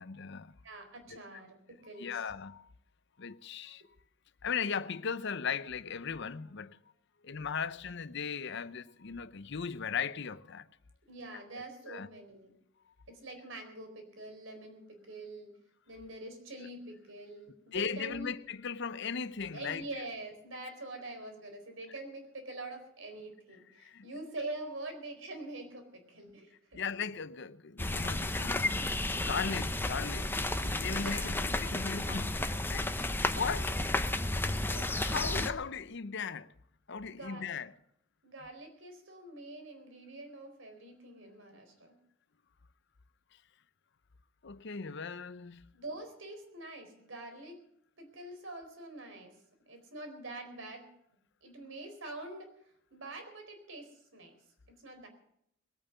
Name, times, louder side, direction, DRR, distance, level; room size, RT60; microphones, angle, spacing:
voice 1, 0.0-0.6 1.1-1.2 2.0-2.7 3.2-3.8 4.4-6.8 7.2-10.7 11.3-12.1 17.7-19.8 23.8-24.0 26.7-32.9 33.3-33.7 34.9-36.5 36.9-37.7 44.4-45.7, left 6 dB, 65° left, 0.7 m, -38 dB
voice 2, 0.6-2.2 11.1-12.5 13.1-15.5 15.9-18.3 19.5-26.8 31.0-31.4 33.7-33.9 34.6-35.2 37.1-37.5 38.2-42.0 45.7-47.6 48.0-49.3 49.6-50.9 51.4-52.5 52.9-54.3 54.7-55.1, right 2 dB, 75° right, 4.3 m, -45 dB
sound 1, 27.8-35.5, left 2 dB, 10° left, 0.8 m, -32 dB
21.5 x 8.9 x 6.6 m
head